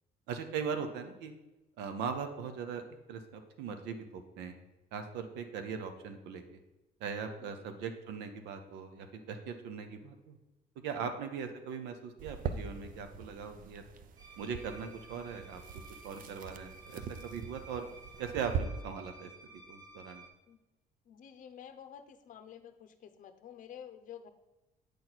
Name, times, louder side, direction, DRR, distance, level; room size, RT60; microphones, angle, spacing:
voice 1, 0.3-1.3 1.8-2.8 3.1-4.5 4.9-6.6 7.0-10.4 10.8-13.8 14.4-15.6 16.0-17.8 18.2-19.3 19.7-20.2, right 6 dB, 90° right, 7 dB, 0.8 m, -40 dB
sound 1, 12.2-18.6, right 7 dB, 55° right, 0.6 m, -42 dB
sound 2, 14.2-20.3, right 2 dB, 25° right, 1.2 m, -54 dB
voice 2, 21.1-24.3, left 9 dB, 50° left, 9 dB, 0.7 m, -50 dB
8.2 x 4.5 x 4.1 m, 1.0 s
cardioid pair, 110°, 17 cm